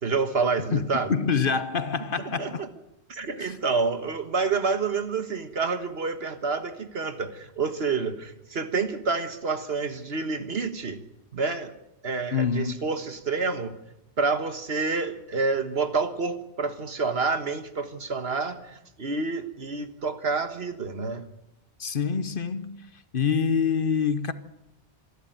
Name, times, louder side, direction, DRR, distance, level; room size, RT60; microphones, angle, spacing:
voice 1, 0.0-1.1 2.4-2.7 3.1-11.0 11.3-11.7 12.0-13.8 14.2-21.3, right 4 dB, 65° right, 1.7 m, -28 dB
voice 2, 0.7-2.6 3.4-3.6 12.3-12.9 21.8-22.9 23.1-24.3, left 6 dB, 55° left, 1.1 m, -26 dB
25.5 x 12.0 x 9.2 m
omnidirectional pair, 1.1 m